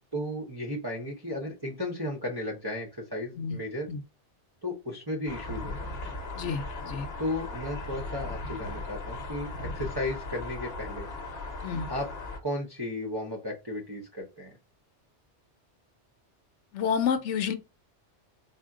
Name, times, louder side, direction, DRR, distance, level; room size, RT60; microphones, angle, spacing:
voice 1, 0.1-3.9 4.6-5.7 6.0-6.1 7.2-11.1 11.9-12.1 12.4-14.5, left 1 dB, 25° right, 0.7 m, -34 dB
sound 1, 5.3-12.4, left 2 dB, 60° left, 1.0 m, -37 dB
voice 2, 6.3-7.1 11.6-11.9 16.7-17.6, left 6 dB, 85° left, 1.0 m, -29 dB
4.2 x 2.1 x 3.7 m
omnidirectional pair, 1.2 m